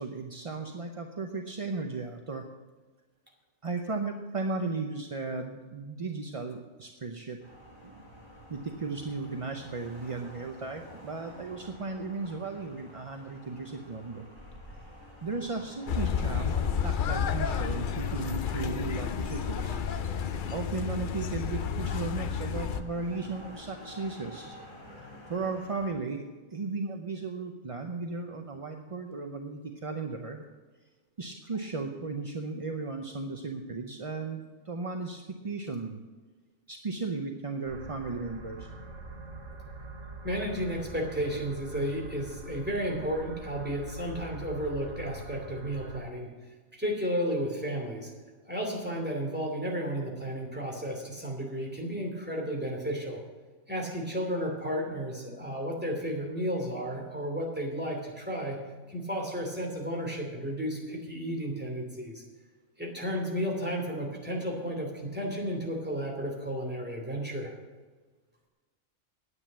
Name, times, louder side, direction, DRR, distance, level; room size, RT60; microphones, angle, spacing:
voice 1, 0.0-2.4 3.6-7.4 7.8-8.0 8.5-14.2 15.2-19.8 20.2-24.6 24.9-26.3 26.5-30.4 31.2-36.0 36.7-38.7, right 3 dB, 35° right, 4 dB, 0.6 m, -35 dB
sound 1, 7.4-25.9, equal, 20° left, 3.8 m, -49 dB
sound 2, 15.9-22.8, left 7 dB, 55° left, 0.6 m, -31 dB
sound 3, 37.6-46.0, right 2 dB, 65° right, 1.9 m, -44 dB
voice 2, 40.2-46.3 46.7-48.1 48.5-53.2 53.7-58.6 58.9-62.2 62.8-67.5, equal, 5° right, 0 dB, 2.7 m, -33 dB
9.8 x 9.2 x 7.4 m, 1.3 s
omnidirectional pair, 1.4 m